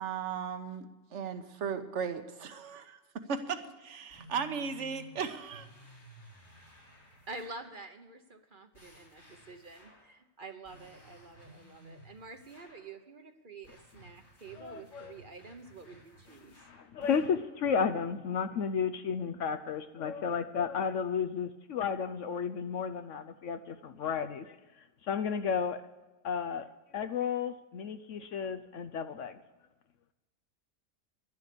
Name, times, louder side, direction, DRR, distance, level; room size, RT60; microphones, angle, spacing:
voice 1, 0.0-3.0 3.3-5.7, right 6 dB, 65° right, 8 dB, 1.3 m, -36 dB
sound 1, 4.1-7.8 8.7-10.2 10.6-12.9 13.6-17.5, right 1 dB, 85° left, 4.3 m, -56 dB
voice 2, 7.3-16.6, right 3 dB, 45° right, 7 dB, 1.0 m, -48 dB
voice 3, 14.6-15.1 16.7-24.6 25.0-25.8 26.2-29.4, left 6 dB, 70° left, 9 dB, 1.0 m, -33 dB
11.5 x 11.5 x 6.8 m, 1.1 s
omnidirectional pair, 1.4 m